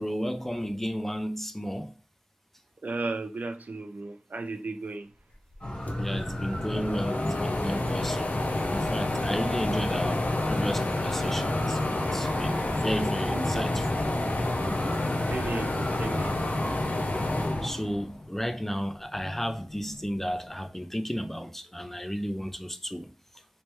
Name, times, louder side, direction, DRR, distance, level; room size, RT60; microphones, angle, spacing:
voice 1, 0.0-1.9 6.0-8.4 8.7-11.8 12.1-13.8 17.6-23.1, equal, 10° left, 0.4 m, -33 dB
voice 2, 2.8-5.1 13.3-13.6 15.3-16.5, right 3 dB, 90° right, 0.4 m, -35 dB
sound 1, 5.5-5.6 5.9-18.5 18.9-20.0, left 2 dB, 70° left, 0.5 m, -29 dB
sound 2, 5.6-17.7, left 1 dB, 50° left, 1.6 m, -35 dB
sound 3, 10.3-14.6, right 1 dB, 55° right, 0.9 m, -44 dB
3.2 x 3.1 x 3.0 m
wide cardioid pair, 55°, 3 cm